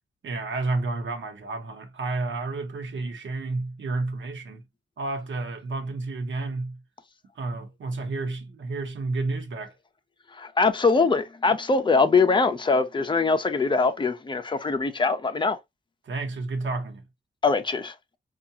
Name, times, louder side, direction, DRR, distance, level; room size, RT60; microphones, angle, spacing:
voice 1, 0.2-4.6 5.0-6.8 7.3-9.7 16.0-17.1, right 3 dB, 85° right, 1.1 m, -31 dB
voice 2, 10.3-15.6 17.4-17.9, left 4 dB, 25° left, 0.6 m, -22 dB
4.6 x 2.4 x 2.8 m
wide cardioid pair, 140°, 19 cm